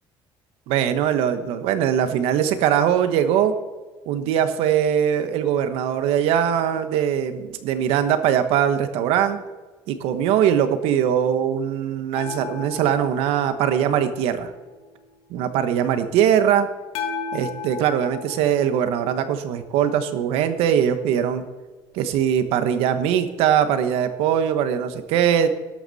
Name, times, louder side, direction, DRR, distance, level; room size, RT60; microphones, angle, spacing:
voice 1, 0.7-3.5 4.1-9.4 9.9-14.5 15.3-16.7 17.3-21.4 21.9-25.5, right 9 dB, 85° right, 10 dB, 1.1 m, -21 dB
sound 1, 12.1-15.0 16.9-20.2 23.0-23.1, left 5 dB, 75° left, 1.7 m, -36 dB
13.0 x 12.0 x 4.2 m, 1.3 s
cardioid pair, 175°, 10 cm